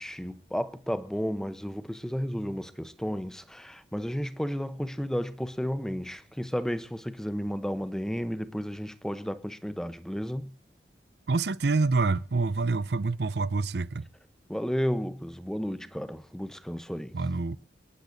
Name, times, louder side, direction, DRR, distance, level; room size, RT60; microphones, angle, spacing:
voice 1, 0.0-10.5 14.5-17.1, equal, 5° left, 0.9 m, -33 dB
voice 2, 11.3-14.1 17.1-17.6, right 3 dB, 70° right, 0.6 m, -27 dB
27.0 x 10.0 x 4.0 m
head